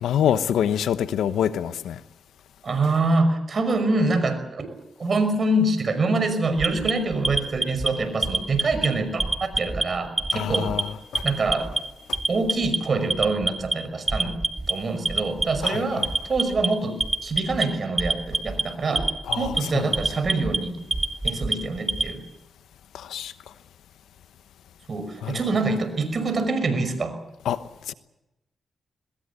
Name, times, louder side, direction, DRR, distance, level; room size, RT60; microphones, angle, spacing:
voice 1, 0.0-2.0 2.8-2.9 10.3-11.3 12.1-12.2 15.6-16.1 19.2-20.0 22.9-23.3 25.2-25.4 27.4-27.9, left 9 dB, 90° left, 1.0 m, -26 dB
voice 2, 2.6-4.7 5.0-10.7 11.2-11.7 12.3-14.4 14.7-19.1 19.4-20.7 21.2-22.2 24.9-27.2, right 3 dB, 55° right, 5.6 m, -25 dB
Alarm, 6.6-7.9 8.2-8.9 9.2-9.8 10.2-10.8 11.1-11.8 12.1-12.8 13.1-13.7 14.1-14.7 15.1-15.7 16.0-16.7 17.0-17.6 18.0-18.6 19.0-19.6 19.9-20.6 20.9-22.1, right 2 dB, 25° right, 2.0 m, -24 dB
22.0 x 21.5 x 8.3 m
cardioid pair, 55°, 0 cm